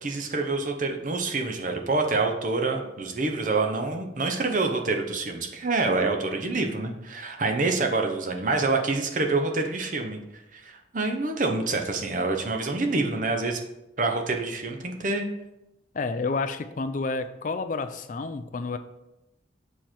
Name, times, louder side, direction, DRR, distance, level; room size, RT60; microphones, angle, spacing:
voice 1, 0.0-10.2 10.5-13.6 14.0-15.3, right 3 dB, 45° right, 4 dB, 0.8 m, -27 dB
voice 2, 15.9-18.8, left 3 dB, 45° left, 10 dB, 0.4 m, -30 dB
7.2 x 4.4 x 4.4 m, 0.92 s
head